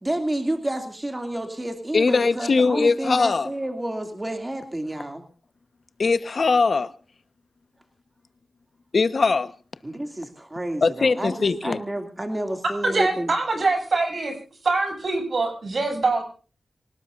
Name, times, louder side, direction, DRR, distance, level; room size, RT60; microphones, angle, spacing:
voice 1, 0.0-5.2 9.8-13.3, right 1 dB, 20° right, 2.6 m, -30 dB
voice 2, 1.9-3.5 6.0-6.9 8.9-9.5 10.8-11.8, left 4 dB, 60° left, 1.2 m, -21 dB
voice 3, 12.8-14.3 14.6-16.2, right 3 dB, 60° right, 7.7 m, -23 dB
26.5 x 18.5 x 2.6 m
wide cardioid pair, 105°, 0 cm